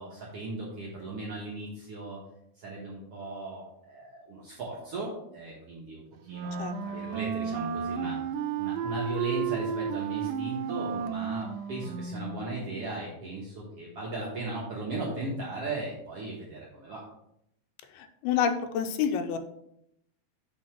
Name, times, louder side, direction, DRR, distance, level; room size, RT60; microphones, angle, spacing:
voice 1, 0.0-2.2 2.5-8.2 8.6-17.0, right 2 dB, 65° right, -4 dB, 1.5 m, -37 dB
Wind instrument woodwind instrument, 6.3-12.5, right 7 dB, 80° right, 2.2 m, -33 dB
voice 2, 18.2-19.4, left 7 dB, 90° left, 8 dB, 2.6 m, -27 dB
7.7 x 4.1 x 4.5 m, 0.78 s
omnidirectional pair, 4.3 m